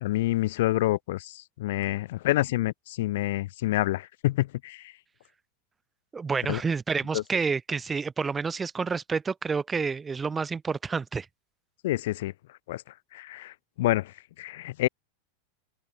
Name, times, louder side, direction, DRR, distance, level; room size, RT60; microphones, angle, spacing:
voice 1, 0.0-4.8 6.5-6.6 7.1-7.2 11.8-12.3 12.7-12.8 13.1-14.1 14.4-14.9, left 16 dB, 55° left, 0.7 m, -27 dB
voice 2, 6.1-11.3, right 5 dB, 15° right, 1.1 m, -29 dB
figure-of-eight pair, 90°, 0 cm